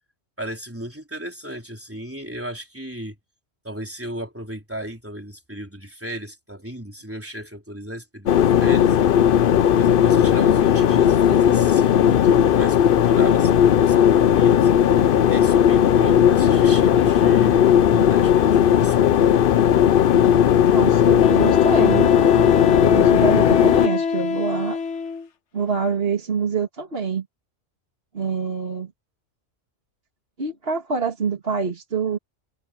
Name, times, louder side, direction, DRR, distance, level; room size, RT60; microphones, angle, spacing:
voice 1, 0.4-3.2 3.6-9.0 9.7-14.7 15.3-19.3, right 1 dB, 10° right, 3.8 m, -35 dB
sound 1, 8.3-23.9, left 9 dB, 60° left, 0.7 m, -16 dB
voice 2, 20.7-22.1 22.8-24.8 25.5-27.3 28.1-28.9 30.4-32.2, right 5 dB, 60° right, 2.3 m, -26 dB
Wind instrument woodwind instrument, 21.2-25.3, left 6 dB, 85° left, 1.3 m, -25 dB
omnidirectional pair, 1.2 m